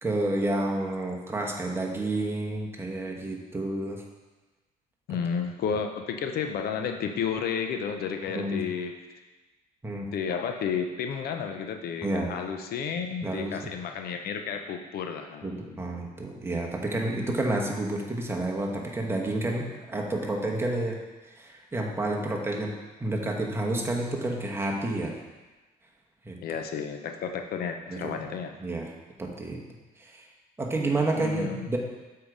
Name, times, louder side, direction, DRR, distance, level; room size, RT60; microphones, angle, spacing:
voice 1, 0.0-4.0 8.3-8.6 9.8-10.1 12.0-12.3 13.2-13.6 15.4-21.0 21.3-22.7 23.0-25.2 26.2-26.4 27.9-28.1 28.6-28.9 29.2-29.6 30.0-30.3 30.6-31.8, right 2 dB, 15° right, -1 dB, 1.1 m, -30 dB
voice 2, 5.1-8.9 10.1-15.8 26.4-28.5 31.1-31.6, left 7 dB, 65° left, 5 dB, 0.7 m, -32 dB
7.2 x 4.7 x 5.0 m, 1.2 s
cardioid pair, 110°, 17 cm